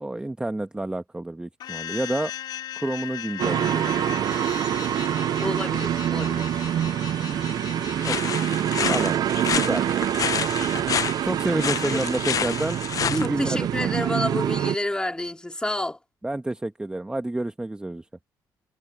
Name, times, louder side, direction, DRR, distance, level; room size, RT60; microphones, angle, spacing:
voice 1, 0.0-2.3 2.7-3.8 8.0-8.3 8.9-9.2 9.4-9.9 11.2-12.8 13.1-13.9 16.2-18.0, right 2 dB, 10° right, 1.2 m, -29 dB
sound 1, 1.6-8.5, left 11 dB, 75° left, 5.4 m, -37 dB
sound 2, 3.4-14.8, right 11 dB, 65° right, 0.4 m, -26 dB
voice 2, 5.4-6.6 11.9-12.0 13.2-16.0, left 1 dB, 10° left, 3.6 m, -29 dB
sound 3, 8.0-13.3, left 8 dB, 50° left, 0.7 m, -29 dB
cardioid pair, 75°, 7 cm